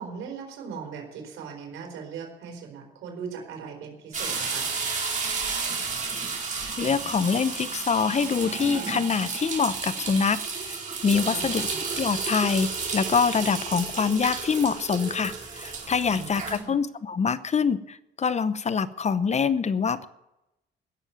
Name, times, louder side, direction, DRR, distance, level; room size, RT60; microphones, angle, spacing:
voice 1, 0.0-4.7 11.3-11.8 16.1-16.7, right 6 dB, 85° right, 2 dB, 4.4 m, -39 dB
sound 1, 4.1-16.6, right 4 dB, 40° right, 4.5 m, -32 dB
voice 2, 6.8-10.4 10.7-10.8 11.0-11.7 12.0-20.1, left 6 dB, 35° left, 15 dB, 0.7 m, -25 dB
16.5 x 7.2 x 9.2 m, 0.92 s
cardioid pair, 90°, 20 cm